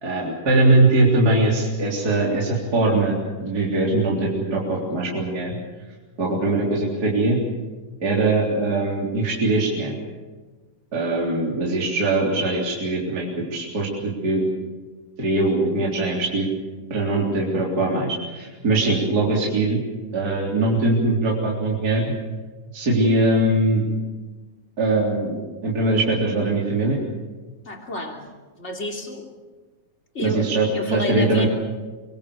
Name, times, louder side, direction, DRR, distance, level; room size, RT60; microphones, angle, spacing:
voice 1, 0.0-5.6 6.2-7.4 8.0-9.9 10.9-14.5 15.2-16.5 16.9-19.8 20.1-22.1 22.7-23.9 24.8-25.4 25.6-27.0 30.2-31.5, right 2 dB, 25° right, -3 dB, 3.9 m, -21 dB
voice 2, 6.3-6.6 27.6-28.2 28.6-29.3 30.1-31.5, left 1 dB, 20° left, 2 dB, 3.2 m, -30 dB
25.0 x 23.5 x 7.1 m, 1.3 s
omnidirectional pair, 4.0 m